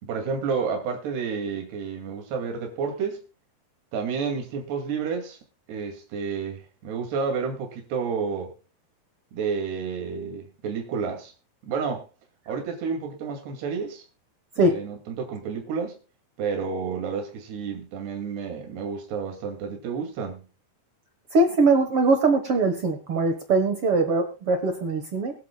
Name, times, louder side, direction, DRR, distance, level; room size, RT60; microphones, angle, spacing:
voice 1, 0.0-3.2 3.9-5.4 5.7-8.6 9.3-11.3 11.7-12.1 12.5-14.0 14.6-16.0 16.4-20.5, right 5 dB, 85° right, 4.5 m, -30 dB
voice 2, 21.3-25.3, right 3 dB, 65° right, 1.4 m, -21 dB
23.5 x 8.5 x 2.3 m
omnidirectional pair, 4.6 m